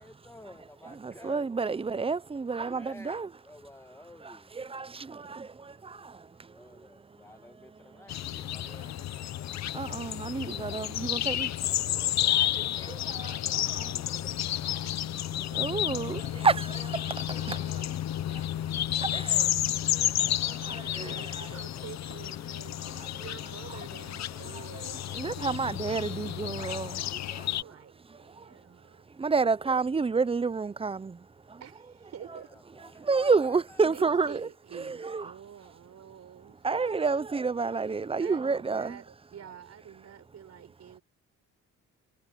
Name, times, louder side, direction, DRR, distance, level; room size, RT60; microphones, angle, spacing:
voice 1, 0.0-1.7 2.6-4.5 6.5-9.7 18.7-19.3 19.7-20.7 21.0-22.5 32.2-33.8, left 1 dB, 10° left, 1.6 m, -54 dB
voice 2, 0.8-3.3 4.2-6.9 7.2-7.3 7.5-8.9 9.7-14.7 15.1-19.4 20.5-21.5 22.8-23.2 24.5-27.6 28.1-28.5 29.1-31.6 32.9-34.5 34.7-35.3 36.6-39.0, right 4 dB, 20° right, 0.6 m, -31 dB
sound 1, 8.1-27.6, left 12 dB, 60° left, 0.8 m, -31 dB
voice 3, 19.9-22.7 23.1-25.6 27.6-29.1 31.6-32.6 33.9-36.7 38.2-41.0, right 9 dB, 60° right, 5.1 m, -48 dB
cardioid pair, 90°, 30 cm